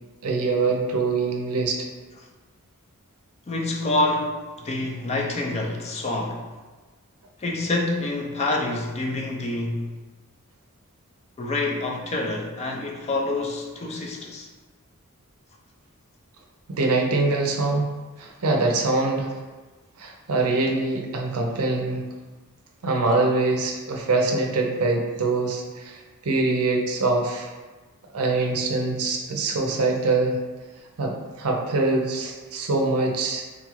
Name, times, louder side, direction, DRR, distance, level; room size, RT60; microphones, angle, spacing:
voice 1, 0.2-1.9 16.7-17.9 18.2-19.4 20.0-22.1 22.8-27.5 28.1-30.4 31.0-33.4, right 3 dB, 80° right, 2 dB, 0.5 m, -24 dB
voice 2, 3.5-6.5 7.4-9.9 11.4-14.5, left 2 dB, 30° left, 0 dB, 0.4 m, -27 dB
3.8 x 2.4 x 3.0 m, 1.3 s
head